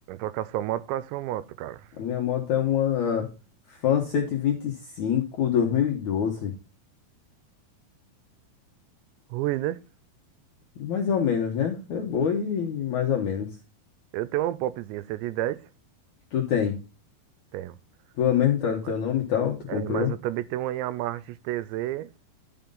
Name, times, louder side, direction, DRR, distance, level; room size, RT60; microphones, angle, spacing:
voice 1, 0.1-1.9 9.3-9.8 14.1-15.7 17.5-17.8 19.7-22.1, right 14 dB, 90° right, 2.9 m, -30 dB
voice 2, 2.0-3.3 3.7-6.5 10.8-13.5 16.3-16.8 18.2-20.1, left 8 dB, 70° left, 1.8 m, -25 dB
11.5 x 5.4 x 3.8 m
omnidirectional pair, 5.1 m